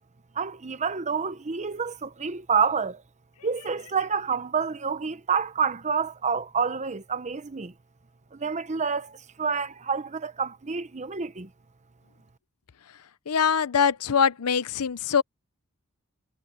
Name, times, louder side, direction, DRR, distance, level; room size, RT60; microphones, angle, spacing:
voice 1, 0.3-3.0 3.4-7.7 8.3-11.5, right 6 dB, 30° right, 0.8 m, -28 dB
voice 2, 13.3-15.2, left 6 dB, 75° left, 0.7 m, -23 dB
head